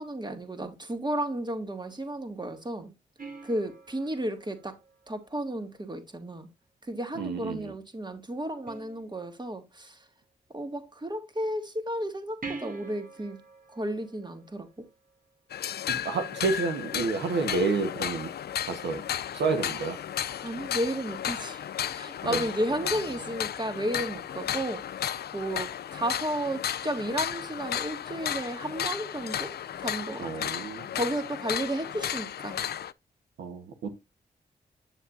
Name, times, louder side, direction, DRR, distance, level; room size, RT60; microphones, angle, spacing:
voice 1, 0.0-2.9 3.4-4.8 5.1-6.5 6.8-10.0 10.5-13.4 13.7-14.9 20.4-21.6 21.9-25.1 25.3-30.5 30.9-32.6, right 1 dB, 25° right, 2.4 m, -33 dB
sound 1, 3.2-5.8 8.7-9.6 12.4-15.3 18.4-18.5, right 4 dB, 50° right, 2.1 m, -46 dB
voice 2, 7.1-7.8 15.9-18.3 18.7-19.0 19.3-20.0 22.2-22.5 30.2-30.9 33.4-33.9, right 4 dB, 85° right, 1.3 m, -30 dB
sound 2, 15.5-32.9, left 10 dB, 65° left, 0.5 m, -34 dB
9.3 x 7.2 x 2.6 m
supercardioid pair, 45°, 18 cm